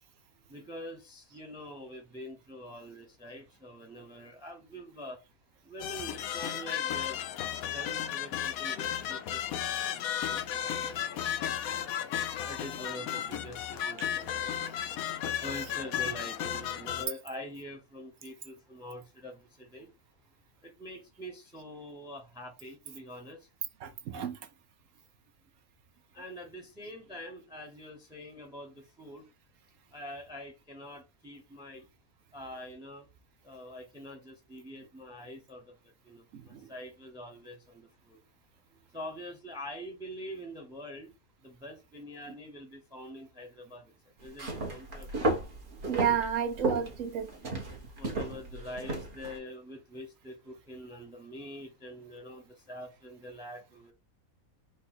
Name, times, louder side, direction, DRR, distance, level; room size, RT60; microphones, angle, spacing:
voice 1, 0.5-5.2 5.6-11.8 12.4-19.9 20.6-23.5 26.1-29.3 29.9-31.9 32.3-33.1 33.4-35.8 36.0-38.2 38.9-41.1 41.4-43.9 44.2-45.3 47.9-53.9, equal, 5° right, 0.8 m, -45 dB
sound 1, 5.8-17.0, left 10 dB, 80° left, 1.0 m, -34 dB
voice 2, 23.8-24.4 36.5-36.6 45.9-47.3, right 8 dB, 70° right, 1.1 m, -30 dB
sound 2, 44.2-49.4, right 2 dB, 40° right, 1.2 m, -34 dB
4.6 x 2.5 x 4.3 m
omnidirectional pair, 1.5 m